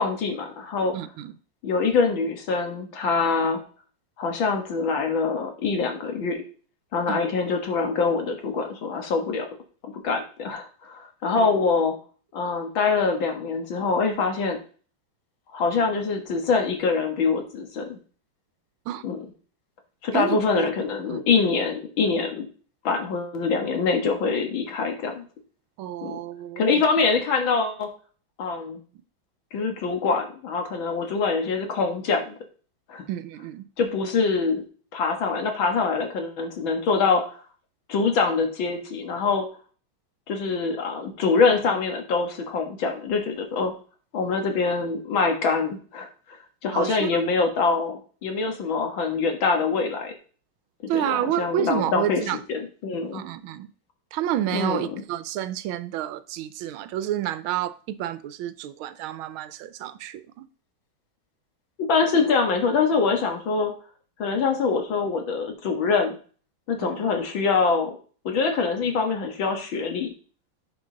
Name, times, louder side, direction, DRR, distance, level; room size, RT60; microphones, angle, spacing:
voice 1, 0.0-1.0 1.6-3.6 4.2-6.4 6.9-9.5 10.0-11.9 12.3-14.6 15.5-18.0 19.0-19.2 20.0-22.5 22.8-25.2 26.0-26.2 26.6-27.9 28.4-28.8 29.5-32.4 32.9-33.0 33.8-34.6 34.9-37.2 37.9-39.5 40.3-43.7 44.1-50.1 50.9-52.2 52.5-53.2 54.5-54.8 61.8-63.7 64.2-66.2 66.7-68.0 68.3-70.1, left 4 dB, 70° left, 2.2 m, -24 dB
voice 2, 0.9-1.3 7.1-7.2 11.3-11.5 18.9-19.0 20.1-20.7 21.0-21.2 25.8-26.8 33.1-33.7 46.7-47.3 50.9-52.4 53.1-53.7 54.1-60.5 66.8-67.0, right 12 dB, 80° right, 1.5 m, -30 dB
10.5 x 5.3 x 3.8 m
omnidirectional pair, 2.3 m